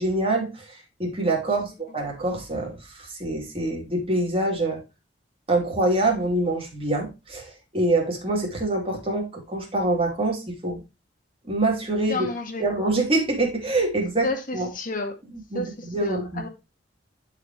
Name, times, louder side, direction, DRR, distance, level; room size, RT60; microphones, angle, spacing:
voice 1, 0.0-4.8 5.5-10.8 11.4-12.3 12.6-14.3 14.5-14.7 15.5-16.4, right 2 dB, 35° right, 3.2 m, -25 dB
voice 2, 12.1-12.7 14.2-15.2 15.5-16.5, left 2 dB, 50° left, 1.8 m, -31 dB
11.0 x 4.9 x 3.2 m
head